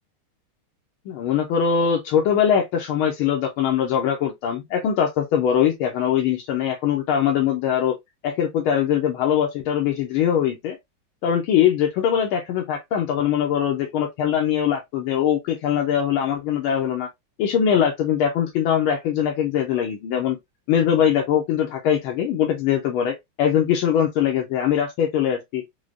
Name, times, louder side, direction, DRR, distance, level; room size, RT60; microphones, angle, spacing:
voice 1, 1.1-8.0 8.2-10.8 11.2-17.1 17.4-20.4 20.7-25.6, left 9 dB, 85° left, 1.5 m, -22 dB
4.8 x 2.1 x 2.5 m
omnidirectional pair, 2.3 m